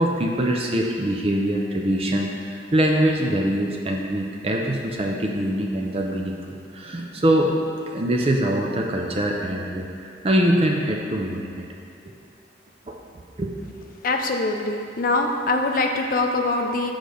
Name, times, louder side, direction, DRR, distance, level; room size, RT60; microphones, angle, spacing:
voice 1, 0.0-7.5 7.9-11.6 12.9-13.0 13.4-13.5, right 1 dB, 30° right, 0 dB, 0.5 m, -23 dB
voice 2, 14.0-16.9, left 2 dB, 45° left, 3 dB, 0.5 m, -23 dB
6.5 x 4.0 x 5.0 m, 2.5 s
head